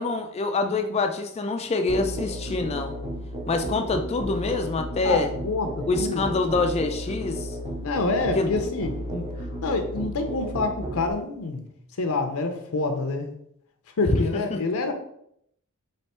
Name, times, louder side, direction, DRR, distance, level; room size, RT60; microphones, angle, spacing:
voice 1, 0.0-3.0 3.5-5.3 5.9-7.5 8.4-8.5 14.1-14.6, left 3 dB, 30° left, 7 dB, 0.3 m, -25 dB
Musical instrument, 1.9-11.1, right 1 dB, 25° right, 0.8 m, -33 dB
voice 2, 5.0-6.2 7.8-9.3 9.6-11.6 12.0-13.3 14.0-14.9, left 3 dB, 70° left, 6 dB, 0.6 m, -27 dB
3.4 x 3.3 x 4.2 m, 0.72 s
head